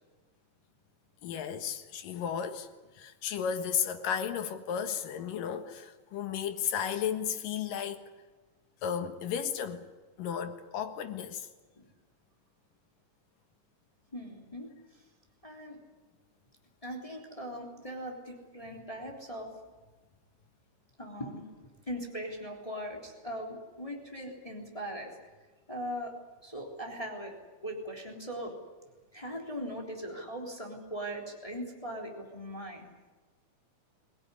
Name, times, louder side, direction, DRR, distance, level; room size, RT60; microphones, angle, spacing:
voice 1, 1.2-2.7 2.9-8.0 8.8-9.8 10.2-11.5, left 8 dB, 80° left, 3.2 m, -34 dB
voice 2, 14.1-15.0 15.4-15.8 16.8-19.5 21.0-21.5 21.9-25.1 25.7-26.1 26.4-27.3 27.6-28.5 29.1-32.8, equal, 10° left, 3.4 m, -40 dB
23.5 x 18.0 x 9.8 m
omnidirectional pair, 3.8 m